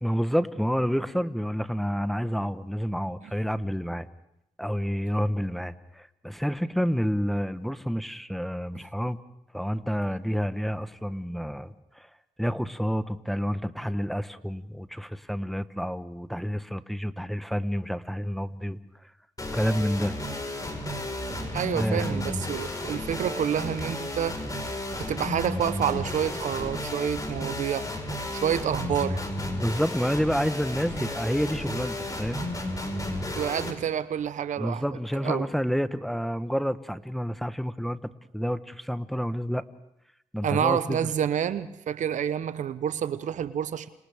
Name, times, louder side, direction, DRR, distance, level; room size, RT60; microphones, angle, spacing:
voice 1, 0.0-4.1 4.6-9.2 9.5-12.1 12.4-18.8 19.5-20.1 21.7-22.2 29.6-32.5 34.6-38.0 38.3-39.6 40.3-41.1, equal, ahead, 11 dB, 1.1 m, -29 dB
sound 1, 19.4-33.7, left 1 dB, 25° left, 4.6 m, -33 dB
voice 2, 21.5-24.4 25.0-27.9 28.3-29.2 33.3-34.8 35.2-35.5 40.4-43.9, right 9 dB, 70° right, 14 dB, 0.8 m, -28 dB
30.0 x 27.0 x 3.5 m, 0.82 s
cardioid pair, 65°, 13 cm